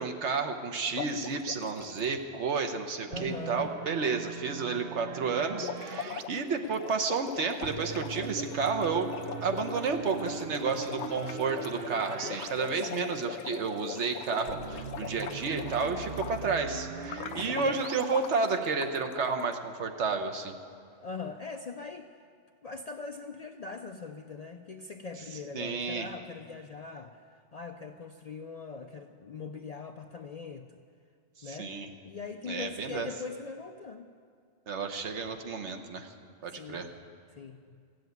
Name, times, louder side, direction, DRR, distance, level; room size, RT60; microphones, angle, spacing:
voice 1, 0.0-9.1 9.4-20.6 25.5-26.1 31.4-31.9 32.5-33.1 34.7-36.1 36.4-36.9, right 4 dB, 80° right, 5 dB, 1.2 m, -31 dB
sound 1, 1.0-2.1 5.5-16.6 17.0-19.5, left 9 dB, 80° left, 0.9 m, -41 dB
voice 2, 3.1-3.7 12.9-13.2 17.5-17.7 21.0-22.1 22.6-30.8 31.4-31.8 32.0-34.1 36.5-36.9 37.3-37.8, left 4 dB, 55° left, 6 dB, 0.4 m, -41 dB
sound 2, 3.1-6.2 7.6-12.5 12.8-12.9 14.5-18.0, right 7 dB, 60° right, 0.8 m, -41 dB
15.0 x 7.8 x 9.2 m, 2.2 s
omnidirectional pair, 1.2 m